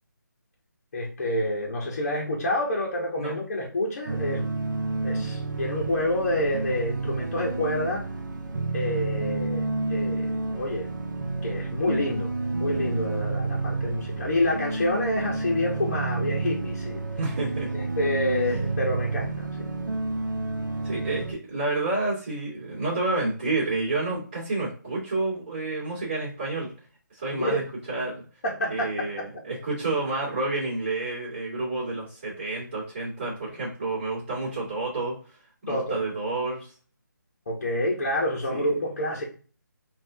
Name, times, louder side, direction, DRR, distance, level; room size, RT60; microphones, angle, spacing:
voice 1, 0.9-4.5 5.0-8.0 8.7-10.9 11.4-17.0 17.7-19.6 27.4-27.6 28.4-29.2 35.7-36.0 37.5-39.2, left 1 dB, 40° left, -3 dB, 1.0 m, -28 dB
sound 1, 4.1-21.3, right 3 dB, 65° right, 0.8 m, -30 dB
voice 2, 17.2-17.7 20.8-26.7 27.1-27.6 27.9-28.2 28.7-35.2 35.7-36.7 38.5-38.7, right 2 dB, 30° right, -7 dB, 1.9 m, -29 dB
5.8 x 2.5 x 2.7 m, 0.39 s
hypercardioid pair, 170°, 11 cm